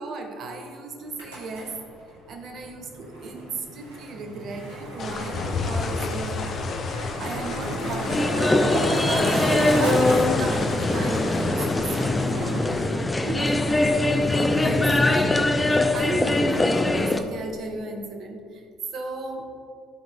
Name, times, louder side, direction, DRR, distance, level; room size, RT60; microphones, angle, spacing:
voice 1, 0.0-1.7 2.3-6.5 7.2-8.6 9.0-12.9 13.2-18.6 18.9-19.5, right 2 dB, 50° right, 4 dB, 1.1 m, -35 dB
Skateboard, 1.0-16.7, right 1 dB, 80° right, 2.2 m, -34 dB
sound 1, 5.0-17.6, left 4 dB, 45° left, 0.8 m, -33 dB
sound 2, 8.1-17.2, left 2 dB, 15° left, 0.6 m, -22 dB
13.0 x 4.8 x 3.6 m, 2.3 s
hypercardioid pair, 55°, 0 cm